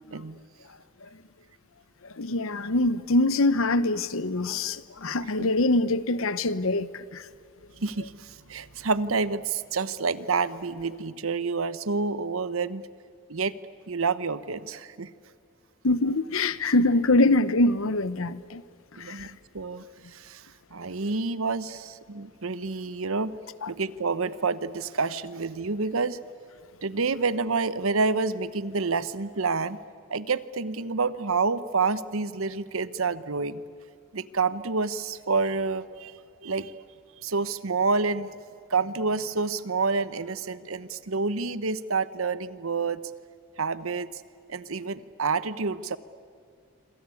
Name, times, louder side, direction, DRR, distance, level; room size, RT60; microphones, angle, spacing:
voice 1, 2.2-6.9 15.8-18.6 19.2-19.3 23.6-23.7, left 2 dB, 75° left, 0.9 m, -24 dB
voice 2, 7.8-12.8 13.3-13.6 13.9-15.1 19.0-19.8 20.1-23.3 23.7-26.2 26.8-29.8 30.1-33.6 34.1-36.7 37.2-38.3 38.7-43.0 43.6-44.1 44.5-46.0, right 4 dB, 75° right, 1.0 m, -28 dB
27.0 x 26.0 x 8.5 m
head